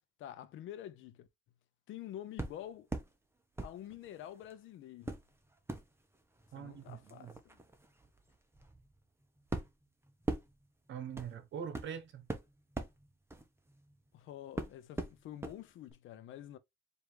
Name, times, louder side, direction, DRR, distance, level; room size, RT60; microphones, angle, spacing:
voice 1, 0.2-1.3 1.9-2.9 3.6-5.2 6.5-7.6 14.1-16.6, left 11 dB, 80° left, 0.7 m, -48 dB
sound 1, 2.4-3.1 3.6-4.5 5.0-14.1 14.6-15.6 15.9-16.0, right 2 dB, 10° right, 1.0 m, -43 dB
voice 2, 6.5-7.3 10.9-12.3, right 8 dB, 70° right, 1.1 m, -43 dB
4.6 x 2.7 x 3.3 m
cardioid pair, 90°, 20 cm